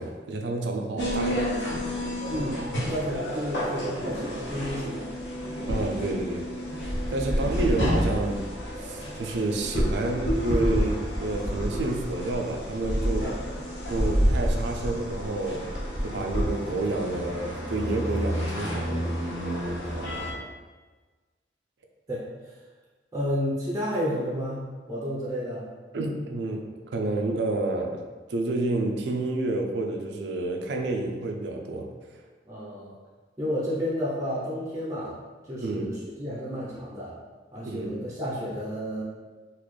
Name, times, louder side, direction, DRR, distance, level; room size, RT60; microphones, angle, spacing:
voice 1, 0.0-1.4 5.7-6.5 7.1-8.5 8.8-13.3 13.9-15.6 16.0-19.1 25.9-28.0 28.3-32.2 35.6-36.0 37.6-38.0, right 2 dB, 75° right, 2 dB, 0.4 m, -29 dB
sound 1, 1.0-20.3, equal, 80° left, 1.0 m, -29 dB
voice 2, 2.3-5.1 13.2-13.4 19.9-20.4 22.1-22.2 23.1-25.7 32.5-32.9 33.4-35.2 35.5-37.1 37.5-39.0, equal, 20° right, -6 dB, 0.6 m, -31 dB
4.0 x 2.4 x 3.1 m, 1.3 s
head